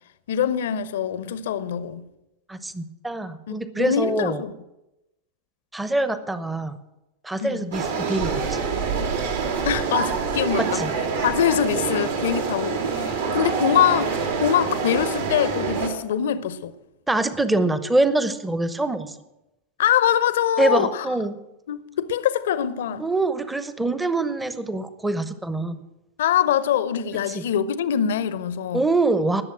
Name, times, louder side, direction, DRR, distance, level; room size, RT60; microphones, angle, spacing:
voice 1, 0.3-2.1 3.5-4.5 7.4-7.7 9.6-10.8 11.2-16.7 19.8-21.1 21.7-23.0 26.2-28.8, left 9 dB, 60° left, 0.7 m, -23 dB
voice 2, 2.5-4.4 5.7-6.8 7.2-8.6 10.6-10.9 17.1-19.2 20.6-21.3 23.0-25.8 27.3-27.4 28.7-29.4, right 2 dB, 10° right, 0.9 m, -24 dB
sound 1, 7.7-15.9, right 5 dB, 70° right, 2.5 m, -26 dB
19.5 x 7.1 x 6.1 m
figure-of-eight pair, 90°, 0 cm